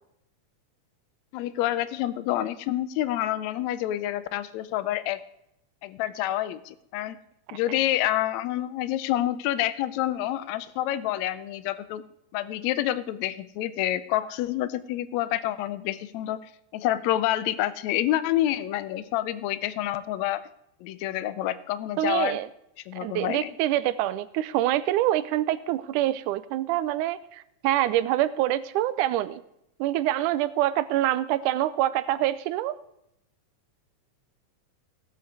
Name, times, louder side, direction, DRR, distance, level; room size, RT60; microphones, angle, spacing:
voice 1, 1.3-5.2 5.8-7.2 7.5-12.0 12.3-16.4 16.7-20.4 20.8-22.4 22.9-23.5, left 13 dB, 75° left, 15 dB, 1.7 m, -28 dB
voice 2, 22.0-22.5 23.0-29.4 29.8-32.8, right 14 dB, 80° right, 15 dB, 2.0 m, -26 dB
16.5 x 8.0 x 4.7 m, 0.79 s
omnidirectional pair, 3.7 m